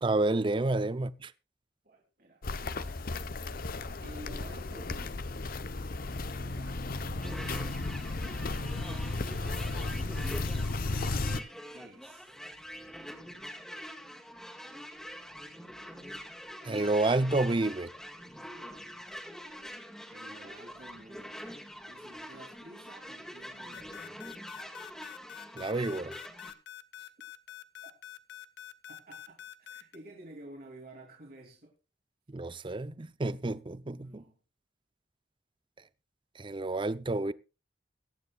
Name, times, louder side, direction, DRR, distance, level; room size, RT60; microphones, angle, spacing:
voice 1, 0.0-1.3 16.6-17.9 25.6-26.1 32.3-34.2 36.4-37.3, right 2 dB, 30° right, 0.6 m, -29 dB
voice 2, 1.8-2.4 4.0-5.3 6.2-7.4 8.4-11.2 11.7-12.3 20.1-21.4 21.9-24.2 27.0-27.1 27.8-28.0 28.9-29.4 29.7-31.8 34.0-34.4, right 1 dB, 55° right, 3.1 m, -51 dB
Walk footsteps, 2.4-11.4, left 3 dB, 55° left, 0.8 m, -34 dB
sound 1, 7.2-26.5, equal, 5° left, 2.0 m, -45 dB
sound 2, 23.7-30.0, left 11 dB, 90° left, 1.1 m, -46 dB
22.5 x 9.5 x 2.3 m
head